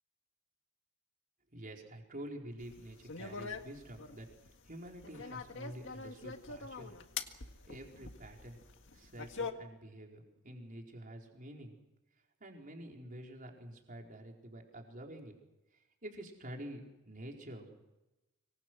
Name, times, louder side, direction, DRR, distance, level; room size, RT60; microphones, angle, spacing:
voice 1, 1.5-4.3 4.6-7.0 7.7-8.6 8.9-11.8 12.4-15.4 16.0-17.8, right 1 dB, 40° right, 1 dB, 4.6 m, -48 dB
sound 1, 2.6-9.5, left 5 dB, 60° left, 1.8 m, -44 dB
25.5 x 24.5 x 6.2 m, 1.0 s
head